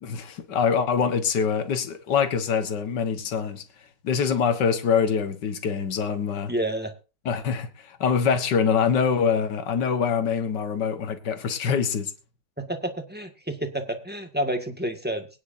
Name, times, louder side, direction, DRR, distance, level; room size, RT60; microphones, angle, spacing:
voice 1, 0.0-3.6 4.0-6.5 7.3-12.1, left 6 dB, 75° left, 2.0 m, -24 dB
voice 2, 6.5-6.9 12.6-15.3, right 1 dB, 5° right, 1.7 m, -29 dB
23.0 x 9.9 x 2.7 m
omnidirectional pair, 1.9 m